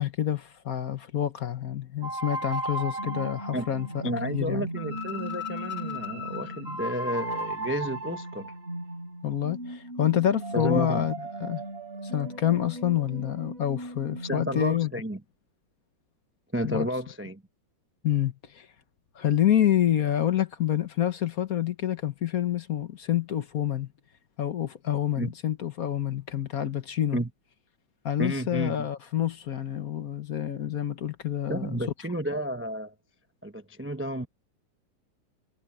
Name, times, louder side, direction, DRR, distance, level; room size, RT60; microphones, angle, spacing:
voice 1, 0.0-4.7 9.2-11.1 11.4-11.6 12.0-14.9 16.6-16.9 18.0-18.7 19.1-23.9 24.4-27.2 28.0-31.7, left 11 dB, 55° left, 1.4 m, -27 dB
sound 1, 2.0-14.8, right 1 dB, 30° right, 5.8 m, -36 dB
voice 2, 4.0-8.5 10.5-11.0 14.2-15.2 16.5-17.4 25.2-25.3 27.1-27.3 28.2-28.9 31.5-32.9 33.4-34.3, equal, 15° right, 0.4 m, -31 dB
omnidirectional pair, 2.1 m